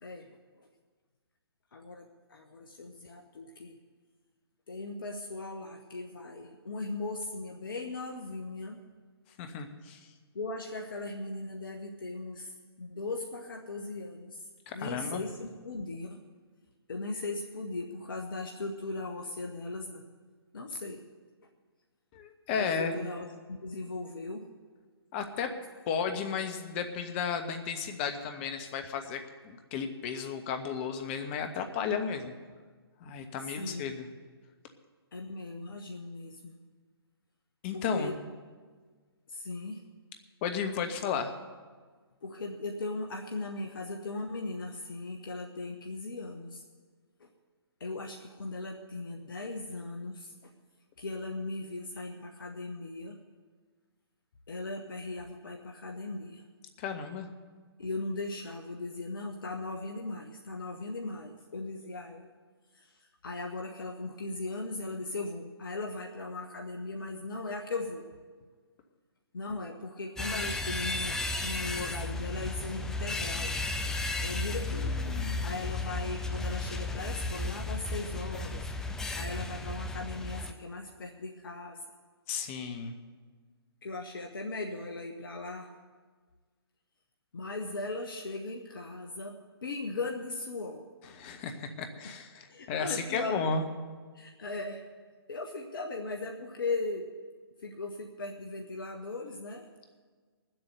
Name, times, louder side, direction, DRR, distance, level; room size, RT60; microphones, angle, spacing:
voice 1, 1.7-3.8 4.7-8.8 10.3-14.4 14.7-16.2 16.9-20.0 20.5-21.0 22.5-24.5 25.9-26.0 33.4-33.9 35.1-36.5 37.7-38.1 39.3-39.8 42.2-46.6 47.2-47.3 47.8-50.5 51.0-53.2 54.5-56.4 57.8-62.3 62.7-68.1 69.3-73.6 74.2-75.1 75.4-78.7 79.1-81.8 83.8-85.7 87.3-90.8 92.0-92.2 92.5-93.5 94.1-94.8 95.3-97.1 97.6-99.7, left 3 dB, 60° left, 2 dB, 1.2 m, -38 dB
voice 2, 9.4-10.0 14.7-15.2 22.1-22.9 25.1-25.5 25.9-32.3 33.0-34.1 37.6-38.2 40.4-41.3 56.8-57.3 74.7-75.4 82.3-82.9 91.1-93.7, left 6 dB, 30° left, 6 dB, 1.3 m, -34 dB
sound 1, 70.2-80.5, left 2 dB, 5° left, 0.5 m, -34 dB
20.0 x 7.8 x 6.7 m, 1.5 s
figure-of-eight pair, 130°, 13 cm